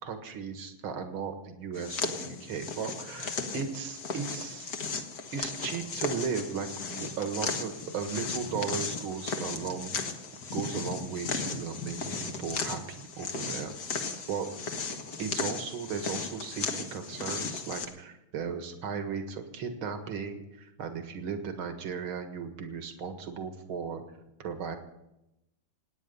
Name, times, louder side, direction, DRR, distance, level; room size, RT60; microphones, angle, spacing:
voice 1, 0.0-4.7 5.3-9.9 10.5-13.7 14.3-14.5 15.2-24.0 24.4-24.8, right 6 dB, 75° right, 6 dB, 2.5 m, -36 dB
sound 1, 1.7-17.9, left 4 dB, 50° left, 1.7 m, -36 dB
27.5 x 9.5 x 5.5 m, 0.90 s
omnidirectional pair, 2.3 m